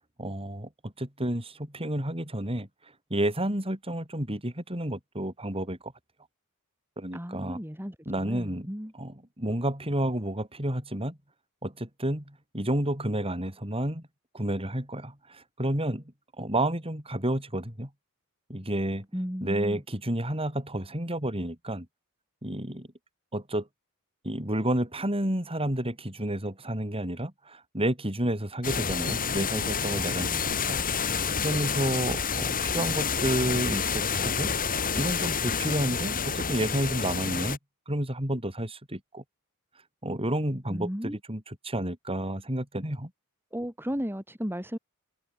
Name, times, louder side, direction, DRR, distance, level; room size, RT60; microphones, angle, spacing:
voice 1, 0.2-2.7 3.1-5.9 7.0-7.6 8.1-8.7 8.9-11.2 11.6-14.0 14.3-16.0 16.4-17.9 18.5-19.1 19.4-21.9 22.4-22.9 23.3-23.7 24.2-37.6 37.9-39.2 40.0-43.1, right 1 dB, 25° right, 7.3 m, -30 dB
voice 2, 7.1-7.9 8.2-8.9 19.1-19.8 30.3-30.6 40.7-41.2 43.5-44.8, equal, 10° right, 6.4 m, -34 dB
sound 1, 28.6-37.6, left 6 dB, 40° left, 5.0 m, -29 dB
head